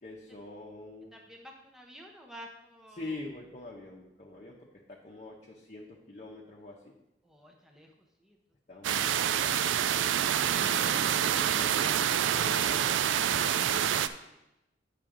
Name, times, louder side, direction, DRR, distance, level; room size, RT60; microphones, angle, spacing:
voice 1, 0.0-1.1 2.9-4.6 4.9-6.9 8.7-9.5 10.5-13.4, left 2 dB, 40° left, -2 dB, 0.8 m, -45 dB
voice 2, 1.1-3.1 7.2-7.9 8.2-8.4 14.2-14.4, equal, ahead, 0 dB, 0.7 m, -50 dB
sound 1, 8.8-14.1, right 9 dB, 90° right, 0.3 m, -27 dB
8.6 x 5.8 x 3.8 m, 0.91 s
head